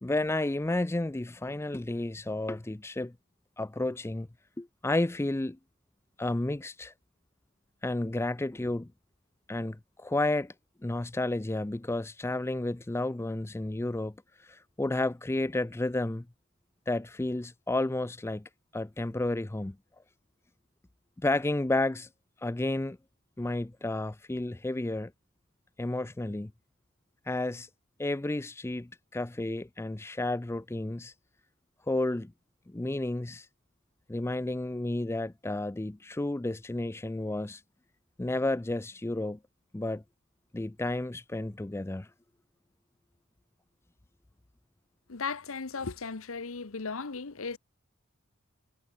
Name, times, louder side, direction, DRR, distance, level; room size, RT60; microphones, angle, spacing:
voice 1, 0.0-3.1 3.6-4.3 4.6-5.6 6.2-6.9 7.8-8.9 9.5-10.5 10.8-14.1 14.4-16.2 16.9-19.8 21.2-22.1 22.4-23.0 23.4-25.1 25.8-26.5 27.3-27.7 28.0-31.1 31.9-32.3 32.7-33.5 34.1-37.6 38.2-39.4 39.7-40.0 40.5-42.1, left 2 dB, 10° left, 0.4 m, -31 dB
voice 2, 45.1-47.6, left 4 dB, 70° left, 1.0 m, -36 dB
head